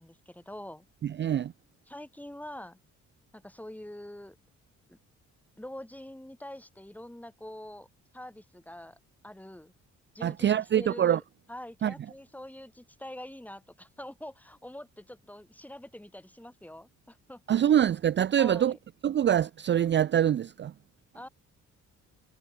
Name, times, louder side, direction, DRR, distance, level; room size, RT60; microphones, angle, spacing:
voice 1, 0.0-0.9 1.9-2.8 3.3-4.4 4.9-5.0 5.6-7.9 8.1-9.0 9.2-9.7 10.1-11.2 11.5-17.8 18.4-18.8 21.1-21.3, left 1 dB, 5° left, 3.4 m, -45 dB
voice 2, 1.0-1.5 10.2-11.2 11.8-11.9 17.5-18.7 19.0-20.7, right 10 dB, 40° right, 0.5 m, -24 dB
cardioid pair, 90°, 30 cm